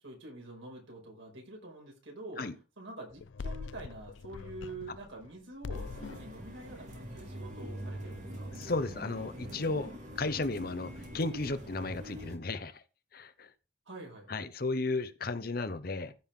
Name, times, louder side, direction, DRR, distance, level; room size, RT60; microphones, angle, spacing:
voice 1, 0.0-2.5 2.8-8.5 13.9-14.3, right 2 dB, 90° right, 5.5 m, -46 dB
sound 1, 3.1-5.3 5.6-6.3, left 4 dB, 75° left, 0.4 m, -42 dB
sound 2, 5.7-12.4, equal, 40° right, 2.8 m, -44 dB
voice 2, 8.6-12.8 13.1-13.5 14.3-16.1, left 3 dB, 50° left, 0.9 m, -34 dB
15.0 x 5.6 x 3.8 m
head